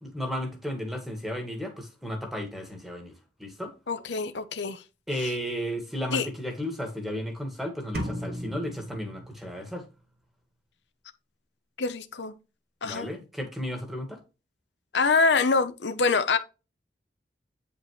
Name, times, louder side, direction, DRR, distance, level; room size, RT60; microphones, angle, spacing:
voice 1, 0.0-3.1 3.4-3.7 5.1-9.8 12.8-14.2, equal, ahead, 1.7 m, -34 dB
voice 2, 3.9-4.8 6.1-6.3 11.8-12.4 12.8-13.1 14.9-16.4, left 4 dB, 80° left, 0.8 m, -25 dB
sound 1, 7.9-9.8, equal, 60° right, 1.9 m, -36 dB
8.8 x 5.2 x 3.2 m
head